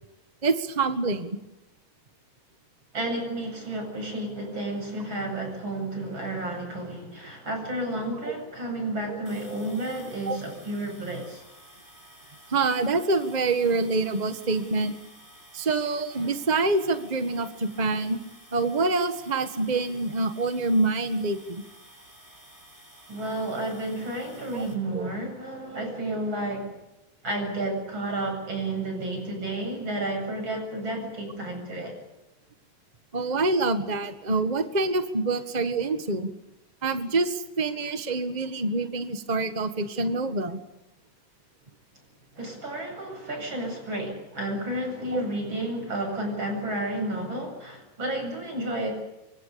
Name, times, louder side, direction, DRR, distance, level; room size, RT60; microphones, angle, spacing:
voice 1, 0.4-1.4 8.2-8.3 9.1-9.2 10.2-10.4 12.5-14.9 15.5-18.2 18.5-21.6 24.5-24.7 24.9-25.1 33.1-36.3 36.8-40.6 45.1-45.2, right 3 dB, 50° right, 9 dB, 0.5 m, -26 dB
voice 2, 2.9-11.4 23.1-26.7 27.2-32.0 42.4-48.9, right 1 dB, 35° right, 3 dB, 8.7 m, -31 dB
sound 1, 9.2-24.7, right 1 dB, 10° right, 8.1 m, -52 dB
25.5 x 24.5 x 7.0 m, 0.93 s
omnidirectional pair, 3.8 m